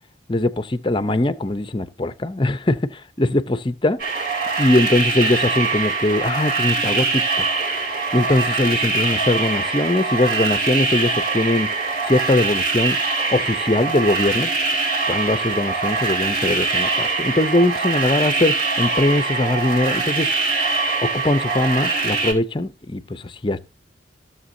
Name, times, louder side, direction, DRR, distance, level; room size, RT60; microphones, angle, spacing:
voice 1, 0.3-4.0 4.6-7.5 8.1-11.7 12.1-13.0 13.3-14.5 15.1-20.3 21.0-23.6, left 2 dB, 25° left, 0.6 m, -21 dB
sound 1, 4.0-22.3, right 3 dB, 55° right, 3.1 m, -23 dB
16.0 x 7.1 x 2.7 m
head